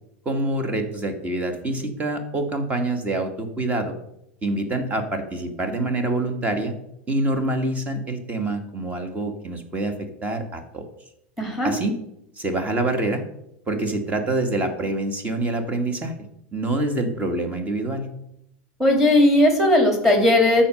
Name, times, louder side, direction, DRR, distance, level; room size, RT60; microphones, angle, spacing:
voice 1, 0.3-3.9 4.4-6.7 7.1-10.8 11.6-12.0 12.4-13.2 13.7-16.1 16.5-18.1, right 2 dB, 25° right, 6 dB, 1.9 m, -26 dB
voice 2, 11.4-11.7 18.8-20.6, left 1 dB, 5° right, 3 dB, 3.3 m, -17 dB
13.0 x 4.5 x 6.5 m, 0.80 s
hypercardioid pair, 105°, 6 cm